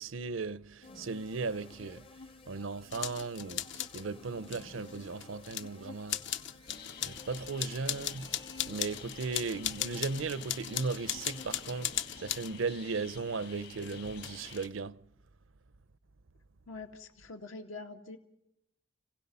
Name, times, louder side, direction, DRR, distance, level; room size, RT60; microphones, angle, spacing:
voice 1, 0.0-2.1 2.5-6.4 7.0-8.4 8.7-15.0, right 4 dB, 85° right, 0.7 m, -37 dB
sound 1, 0.8-12.6, left 3 dB, 30° left, 0.7 m, -53 dB
sound 2, 2.9-4.0 4.4-5.6 6.1-12.5 13.8-14.7, left 11 dB, 65° left, 0.9 m, -38 dB
sound 3, 6.7-14.7, left 6 dB, 50° left, 1.6 m, -50 dB
voice 2, 16.7-18.2, left 3 dB, 90° left, 2.2 m, -45 dB
29.5 x 16.5 x 5.6 m
head